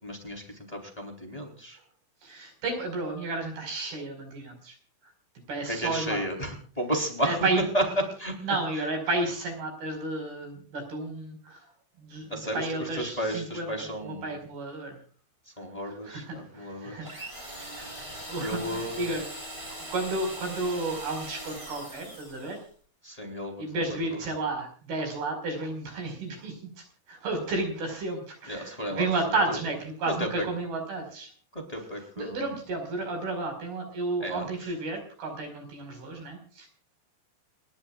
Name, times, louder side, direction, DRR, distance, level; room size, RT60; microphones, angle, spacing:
voice 1, 0.0-1.8 5.7-7.4 7.7-7.8 8.2-8.4 8.8-8.9 12.3-14.4 15.6-17.2 18.4-19.1 23.0-23.6 24.1-24.2 28.5-29.6 30.1-30.3 31.5-32.4 34.2-34.7, equal, 10° left, 2 dB, 3.4 m, -33 dB
voice 2, 2.2-4.8 5.5-6.2 7.2-7.6 8.4-11.7 12.0-15.0 15.9-19.3 19.7-22.6 23.6-26.7 27.1-31.3 32.2-36.7, right 2 dB, 90° right, 4 dB, 7.1 m, -32 dB
sound 1, 17.0-22.7, right 1 dB, 15° right, 4.2 m, -41 dB
29.5 x 12.0 x 2.4 m, 0.41 s
omnidirectional pair, 4.3 m